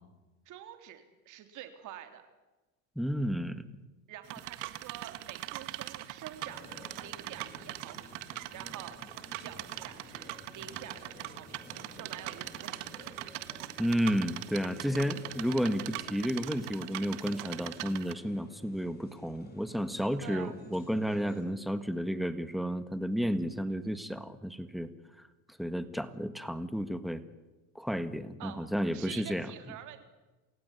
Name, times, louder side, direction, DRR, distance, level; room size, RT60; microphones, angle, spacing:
voice 1, 0.5-2.2 4.1-6.6 7.0-8.1 8.5-9.0 9.4-11.6 11.9-12.8 20.2-20.6 28.4-28.6 28.9-30.0, right 11 dB, 55° right, 7 dB, 3.4 m, -47 dB
voice 2, 2.9-3.7 13.8-24.9 25.6-27.2 27.7-29.5, equal, ahead, 11 dB, 1.7 m, -32 dB
sound 1, 4.2-18.1, right 17 dB, 85° right, 1.8 m, -42 dB
sound 2, 6.4-21.4, left 3 dB, 25° left, 6.8 m, -52 dB
28.5 x 16.5 x 9.9 m, 1.1 s
supercardioid pair, 120°, 35 cm